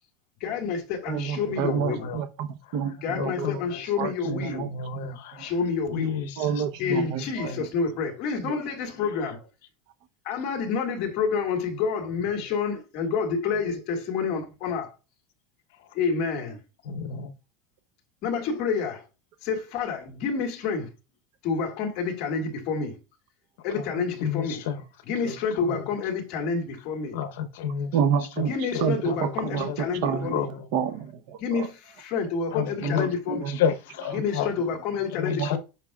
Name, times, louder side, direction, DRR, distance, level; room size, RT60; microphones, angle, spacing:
voice 1, 0.4-2.1 3.0-4.7 5.4-6.2 6.8-9.5 10.2-14.9 15.9-16.6 18.2-19.1 19.4-20.9 21.4-23.0 23.6-24.6 25.1-27.2 28.5-30.4 31.4-33.5 34.1-35.6, left 5 dB, 45° left, 1.8 m, -28 dB
voice 2, 1.1-3.5 4.0-4.7 4.9-5.5 6.4-7.5 8.4-8.6 27.9-28.5 28.8-30.4 30.7-31.7 32.8-33.6 35.3-35.6, right 7 dB, 55° right, 0.8 m, -29 dB
voice 3, 1.6-2.2 2.7-2.8 3.1-5.5 5.9-7.6 15.8-15.9 16.8-17.3 23.7-23.9 24.2-24.8 25.2-25.9 27.1-27.9 28.4-30.7 32.5-33.1 33.5-34.6 35.1-35.6, left 7 dB, 80° left, 0.9 m, -32 dB
8.8 x 5.7 x 2.4 m
supercardioid pair, 170°, 0 cm